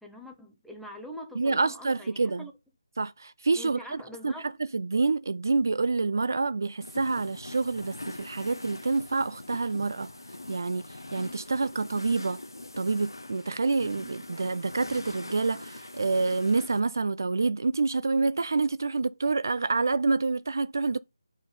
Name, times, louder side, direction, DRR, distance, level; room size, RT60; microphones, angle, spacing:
voice 1, 0.0-2.5 3.5-4.6, equal, ahead, 0.7 m, -44 dB
voice 2, 1.4-2.4 3.0-3.8 4.2-4.3 4.7-10.1 10.5-12.4 12.8-21.0, right 3 dB, 50° right, 0.4 m, -27 dB
sound 1, 6.8-16.8, left 2 dB, 70° left, 1.1 m, -42 dB
7.6 x 4.6 x 5.2 m
figure-of-eight pair, 155°, 2 cm